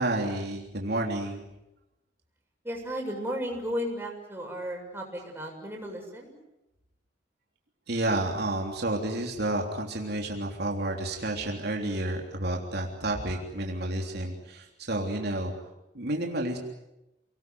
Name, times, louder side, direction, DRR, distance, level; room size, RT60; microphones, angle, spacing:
voice 1, 0.0-1.4 7.9-15.5 15.9-16.6, right 1 dB, 65° right, 1 dB, 3.4 m, -30 dB
voice 2, 2.6-6.3, equal, 10° right, 0 dB, 7.2 m, -34 dB
29.0 x 20.0 x 9.5 m, 0.93 s
head